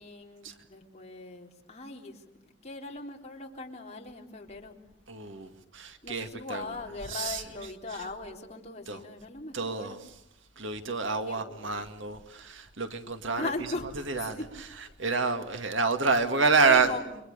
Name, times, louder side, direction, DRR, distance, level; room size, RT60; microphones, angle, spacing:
voice 1, 0.0-4.8 6.0-10.0 11.3-12.1 13.3-14.5 16.1-16.2 16.6-17.1, left 3 dB, 35° left, 3.8 m, -39 dB
voice 2, 5.1-6.7 7.1-7.4 8.9-9.0 9.5-10.0 10.6-13.5 14.1-14.4 15.0-16.9, right 4 dB, 70° right, 2.1 m, -28 dB
29.5 x 24.5 x 6.8 m
head